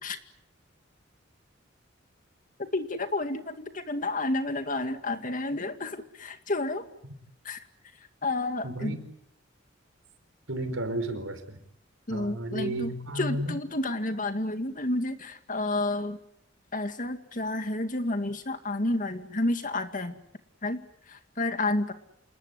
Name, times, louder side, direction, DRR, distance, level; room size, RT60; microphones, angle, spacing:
voice 1, 2.6-6.9 7.4-7.6 8.2-9.0 12.1-16.2 16.7-20.2 20.6-21.9, left 2 dB, 40° left, 8 dB, 2.2 m, -30 dB
voice 2, 8.6-9.0 10.5-11.6 12.1-13.6, right 1 dB, 90° right, 8 dB, 4.8 m, -33 dB
28.0 x 20.5 x 9.7 m, 0.75 s
head